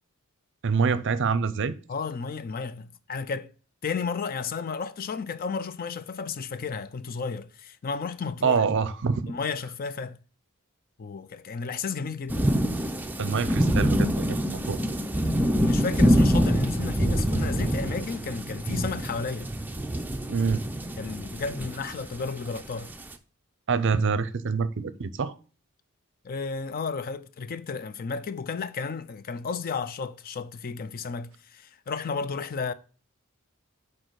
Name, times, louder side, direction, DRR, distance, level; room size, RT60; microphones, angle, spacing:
voice 1, 0.6-1.7 8.4-9.3 13.2-14.8 20.3-20.6 23.7-25.3, right 5 dB, 55° right, 0.5 m, -26 dB
voice 2, 1.9-3.5 3.8-8.6 9.3-10.2 11.0-12.5 15.6-19.5 21.0-22.9 26.2-32.7, left 5 dB, 40° left, 0.4 m, -33 dB
sound 1, 12.3-23.1, equal, 10° right, 0.5 m, -25 dB
6.5 x 4.3 x 4.7 m
head